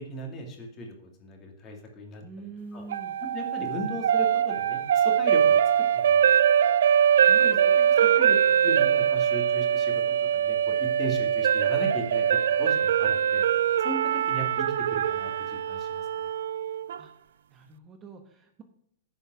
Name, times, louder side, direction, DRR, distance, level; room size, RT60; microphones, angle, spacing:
voice 1, 0.1-2.2 2.7-2.8 3.3-5.6 5.9-6.5 7.4-7.6 8.1-8.4 8.6-9.9 10.3-12.3 12.6-13.4 13.8-14.0 14.3-14.6 14.9-16.1, equal, 25° left, 2 dB, 2.5 m, -37 dB
voice 2, 2.2-3.1 7.3-8.4 17.0-17.1 17.5-18.6, right 4 dB, 20° right, 5 dB, 1.1 m, -45 dB
sound 1, 2.9-17.0, right 9 dB, 80° right, 0.5 m, -23 dB
10.5 x 5.5 x 6.3 m, 0.72 s
hypercardioid pair, 150°, 0 cm